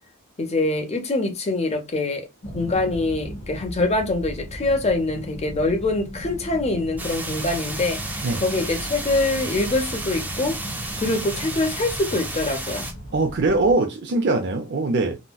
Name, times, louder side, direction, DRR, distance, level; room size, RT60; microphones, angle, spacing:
voice 1, 0.4-2.3 2.5-10.6 11.0-12.9, left 2 dB, 30° left, 0.6 m, -24 dB
sound 1, 2.4-13.7, equal, 80° left, 0.9 m, -36 dB
sound 2, 7.0-12.9, right 2 dB, 10° right, 0.6 m, -33 dB
voice 2, 13.1-15.2, right 3 dB, 55° right, 0.5 m, -22 dB
3.8 x 2.1 x 2.2 m
head